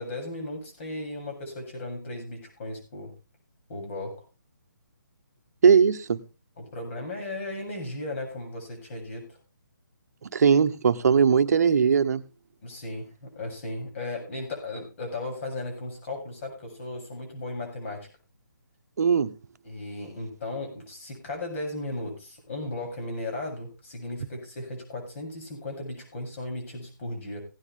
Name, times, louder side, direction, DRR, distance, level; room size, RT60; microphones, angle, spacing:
voice 1, 0.0-3.1 3.7-4.1 6.6-9.3 12.6-18.1 19.6-27.4, left 2 dB, 40° left, 7.7 m, -36 dB
voice 2, 5.6-6.2 10.3-12.2 19.0-19.3, right 6 dB, 55° right, 1.1 m, -19 dB
17.0 x 9.9 x 3.5 m
hypercardioid pair, 160°, 10 cm